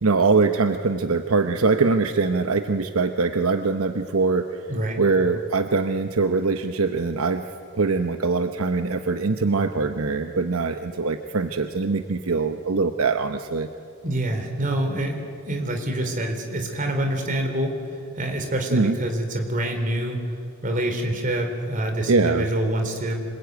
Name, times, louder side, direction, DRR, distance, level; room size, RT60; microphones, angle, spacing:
voice 1, 0.0-4.5 5.0-7.5 7.7-13.7 18.7-19.0 22.1-22.5, right 4 dB, 70° right, 7 dB, 0.9 m, -22 dB
voice 2, 14.0-17.8 18.2-20.2 20.6-23.1, right 1 dB, 35° right, 4 dB, 3.6 m, -26 dB
26.0 x 21.0 x 9.3 m, 2.4 s
head